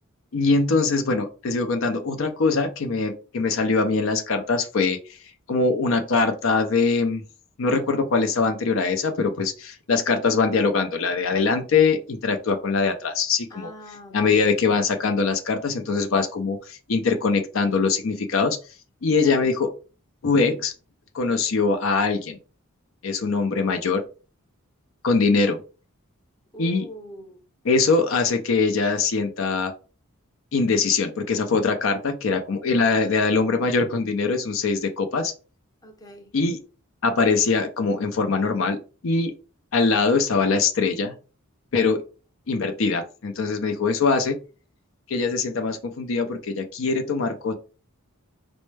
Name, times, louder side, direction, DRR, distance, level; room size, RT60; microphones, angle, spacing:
voice 1, 0.3-5.0 5.5-7.2 7.6-13.7 14.1-18.6 19.0-19.7 20.2-20.7 21.1-22.4 23.0-24.0 25.0-25.6 26.6-26.9 27.6-29.7 30.5-35.3 36.3-36.6 37.0-38.8 39.0-39.3 39.7-41.1 41.7-42.0 42.5-44.4 45.1-47.5, left 4 dB, 65° left, 0.5 m, -22 dB
voice 2, 13.5-14.5 19.2-19.5 26.5-27.4 35.8-36.3 43.9-44.2, left 1 dB, 15° left, 0.6 m, -43 dB
4.3 x 2.1 x 3.2 m
head